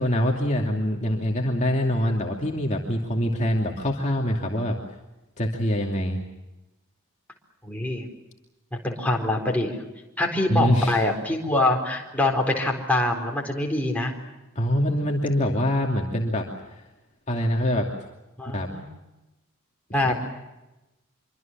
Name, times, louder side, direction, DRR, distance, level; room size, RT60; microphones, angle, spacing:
voice 1, 0.0-4.8 5.4-6.2 10.5-11.0 14.5-16.8 17.3-17.9 18.5-18.7 19.9-20.1, equal, 30° left, 0 dB, 2.6 m, -24 dB
voice 2, 7.6-8.1 8.7-9.8 10.2-14.1 18.4-18.8 19.9-20.1, left 2 dB, 5° left, 0 dB, 4.2 m, -24 dB
26.0 x 24.5 x 7.4 m, 1.0 s
head